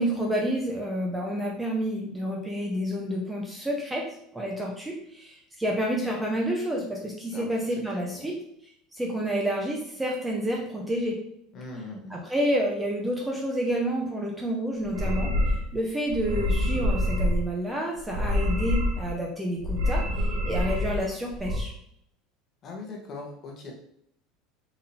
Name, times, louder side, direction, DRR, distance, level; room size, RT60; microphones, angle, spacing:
voice 1, 0.0-4.1 4.3-8.4 8.9-11.2 12.1-21.7, equal, 10° right, -1 dB, 0.6 m, -29 dB
voice 2, 11.5-12.2 22.6-23.7, left 3 dB, 35° left, 0 dB, 1.1 m, -40 dB
sound 1, 14.8-15.7 16.1-17.4 18.0-19.1 19.6-21.0 21.3-21.6, left 1 dB, 55° right, 0.8 m, -26 dB
3.9 x 3.7 x 2.8 m, 0.73 s
supercardioid pair, 150°, 0 cm